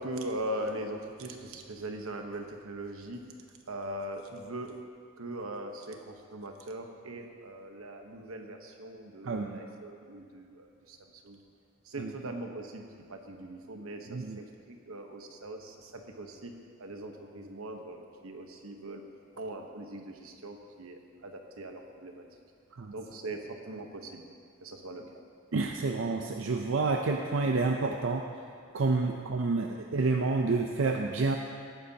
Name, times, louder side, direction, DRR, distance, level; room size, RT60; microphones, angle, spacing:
voice 1, 0.0-3.2 3.7-4.8 5.2-11.4 11.8-16.5 16.8-19.0 19.3-22.2 22.9-24.2 24.6-25.0, right 1 dB, 85° right, 4 dB, 1.1 m, -40 dB
voice 2, 9.2-9.6 12.0-12.1 14.1-14.4 22.8-22.9 25.5-28.2 28.7-31.4, right 3 dB, 65° right, 2 dB, 0.5 m, -29 dB
18.5 x 9.2 x 2.8 m, 2.2 s
head